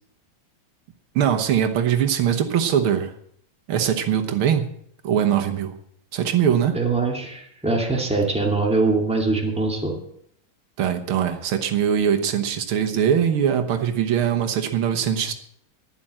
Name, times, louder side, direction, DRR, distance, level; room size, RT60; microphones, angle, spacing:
voice 1, 1.2-3.1 3.7-4.7 5.0-5.7 6.1-6.8 10.8-15.3, right 8 dB, 80° right, 6 dB, 2.0 m, -21 dB
voice 2, 6.7-10.0, right 3 dB, 5° right, 0 dB, 2.4 m, -22 dB
11.5 x 10.5 x 7.5 m, 0.69 s
omnidirectional pair, 2.3 m